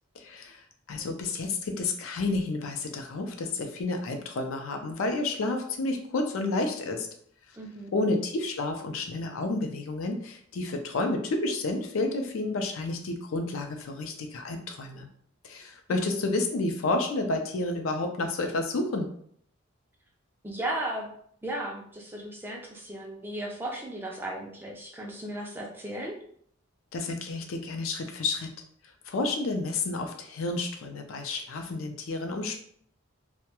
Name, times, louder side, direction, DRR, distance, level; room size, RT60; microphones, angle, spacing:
voice 1, 0.2-7.1 7.9-15.1 15.4-19.1 26.9-28.5 29.1-32.6, left 2 dB, 75° left, 5 dB, 0.4 m, -30 dB
voice 2, 7.6-7.9 15.9-16.2 20.4-21.1 21.4-26.1, right 1 dB, 10° right, -1 dB, 0.3 m, -36 dB
2.2 x 2.1 x 2.8 m, 0.63 s
head